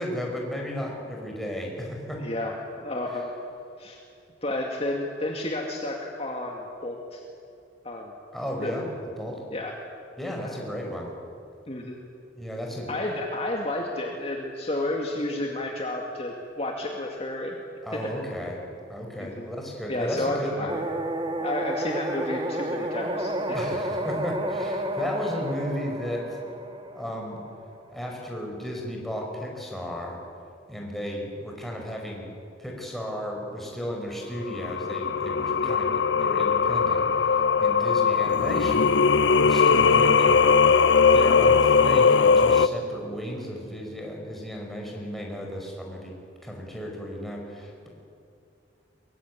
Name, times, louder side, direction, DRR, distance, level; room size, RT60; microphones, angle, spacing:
voice 1, 0.0-2.2 8.3-9.4 10.2-11.1 12.3-13.1 17.8-18.6 18.9-20.7 23.5-26.2 26.9-27.4 27.9-30.2 30.7-32.3 32.6-39.0 39.4-40.4 41.0-46.1 46.4-47.9, equal, ahead, -1 dB, 5.1 m, -34 dB
voice 2, 2.2-3.3 3.8-4.0 4.4-7.2 7.8-8.1 8.6-8.7 9.5-9.7 11.7-12.0 12.9-17.6 17.9-18.1 19.2-19.5 19.9-20.7 21.4-23.6 35.6-36.0, left 1 dB, 30° left, 0 dB, 2.3 m, -31 dB
sound 1, 20.7-27.6, right 1 dB, 25° right, 1.8 m, -31 dB
Singing, 34.5-42.7, left 5 dB, 70° left, 0.8 m, -20 dB
23.0 x 22.5 x 9.5 m, 2.6 s
head